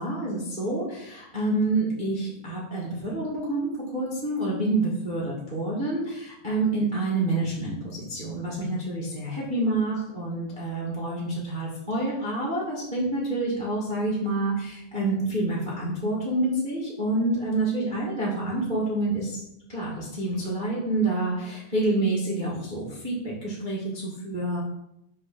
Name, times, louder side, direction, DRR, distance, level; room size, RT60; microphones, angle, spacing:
voice 1, 0.0-19.4 19.7-24.6, right 2 dB, 45° right, -5 dB, 0.6 m, -28 dB
6.4 x 4.9 x 6.4 m, 0.82 s
omnidirectional pair, 4.4 m